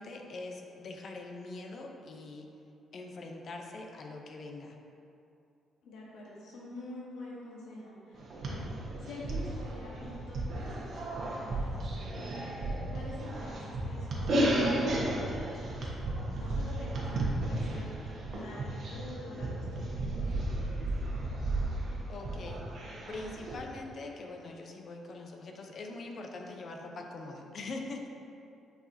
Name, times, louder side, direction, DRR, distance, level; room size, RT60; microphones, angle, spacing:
voice 1, 0.0-2.5 2.9-4.8 22.1-22.6 23.1-28.1, left 2 dB, 55° left, 2 dB, 0.7 m, -43 dB
voice 2, 5.8-8.7 9.0-20.8 26.8-27.1, left 1 dB, 85° left, -5 dB, 1.3 m, -47 dB
sound 1, 8.2-23.5, right 1 dB, 60° right, 1.3 m, -34 dB
8.8 x 4.9 x 2.7 m, 2.6 s
cardioid pair, 90°, 0 cm